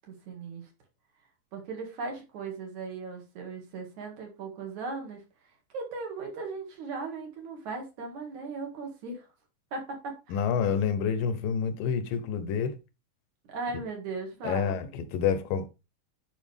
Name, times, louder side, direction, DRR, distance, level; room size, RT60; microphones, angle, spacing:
voice 1, 0.1-0.7 1.5-5.2 5.7-9.3 9.7-10.4 13.5-14.9, right 4 dB, 60° right, 3.3 m, -37 dB
voice 2, 10.3-12.8 14.4-15.7, left 7 dB, 90° left, 2.7 m, -28 dB
11.5 x 5.0 x 3.5 m
omnidirectional pair, 3.9 m